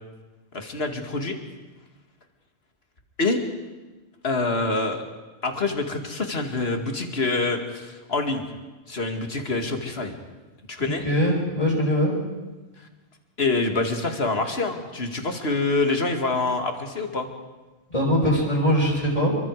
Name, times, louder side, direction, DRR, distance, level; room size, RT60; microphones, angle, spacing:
voice 1, 0.5-1.4 3.2-3.4 4.2-5.0 5.4-8.4 8.9-10.1 10.7-11.0 13.4-17.3, left 3 dB, 55° left, 5 dB, 2.5 m, -26 dB
voice 2, 11.0-12.2 17.9-19.3, equal, 35° left, -7 dB, 6.1 m, -21 dB
28.5 x 24.0 x 4.9 m, 1.2 s
omnidirectional pair, 1.3 m